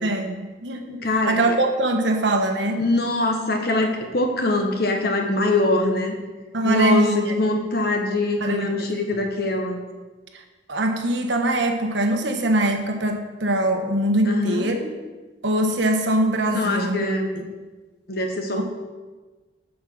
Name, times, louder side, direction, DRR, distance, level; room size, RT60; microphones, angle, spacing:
voice 1, 0.0-2.8 6.5-7.3 8.4-8.9 10.7-14.9 15.4-17.0 17.4-17.5 18.6-18.7, right 1 dB, 80° right, 4 dB, 1.3 m, -22 dB
voice 2, 1.0-1.6 2.7-6.1 6.6-9.8 14.3-14.7 16.5-17.3 18.1-18.6, left 2 dB, 55° left, 3 dB, 1.2 m, -23 dB
7.7 x 6.4 x 6.1 m, 1.3 s
head